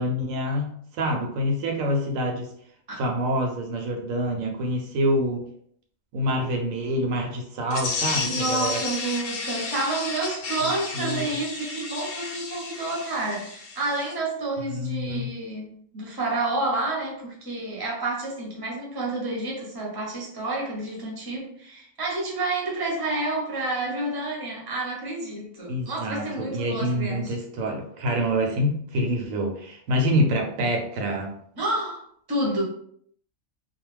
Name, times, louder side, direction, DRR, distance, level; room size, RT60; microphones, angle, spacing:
voice 1, 0.0-2.5 3.0-5.5 6.1-8.9 10.6-11.3 14.7-15.3 25.7-31.4, equal, 80° right, 2 dB, 1.0 m, -26 dB
sound 1, 7.7-14.1, left 4 dB, 60° left, 0.7 m, -32 dB
voice 2, 8.2-15.7 15.9-27.3 31.6-32.0 32.3-32.6, right 2 dB, 25° right, -3 dB, 0.6 m, -29 dB
2.4 x 2.1 x 3.2 m, 0.64 s
omnidirectional pair, 1.4 m